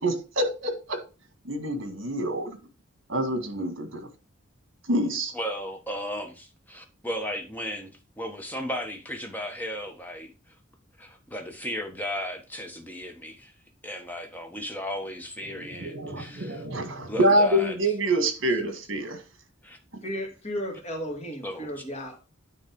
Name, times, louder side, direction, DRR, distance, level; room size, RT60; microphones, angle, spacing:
voice 1, 0.0-1.0 1.4-2.6 3.1-4.1 4.9-5.3 15.5-19.2, right 1 dB, 65° right, 1.7 m, -26 dB
voice 2, 5.3-7.9 8.2-10.3 11.0-13.5 13.8-17.8 19.6-19.8 21.4-21.8, left 1 dB, 10° left, 1.1 m, -35 dB
voice 3, 20.0-22.2, equal, 35° left, 1.9 m, -34 dB
9.3 x 3.3 x 5.1 m
head